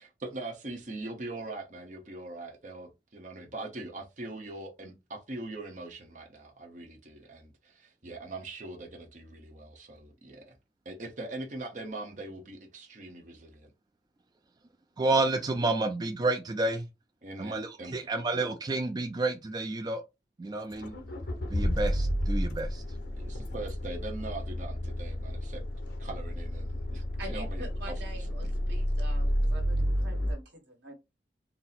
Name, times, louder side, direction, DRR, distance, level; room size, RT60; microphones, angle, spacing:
voice 1, 0.0-10.6 10.8-13.7 17.2-18.0 23.1-25.6 26.0-28.3, right 2 dB, 45° right, 0.8 m, -42 dB
voice 2, 15.0-16.8 17.4-20.0 20.4-20.9 21.5-22.8, right 2 dB, 25° right, 0.3 m, -30 dB
Accelerating revving vroom, 20.7-30.3, equal, 75° left, 0.8 m, -31 dB
voice 3, 27.2-30.9, right 1 dB, 80° right, 1.4 m, -45 dB
4.1 x 2.0 x 4.0 m
head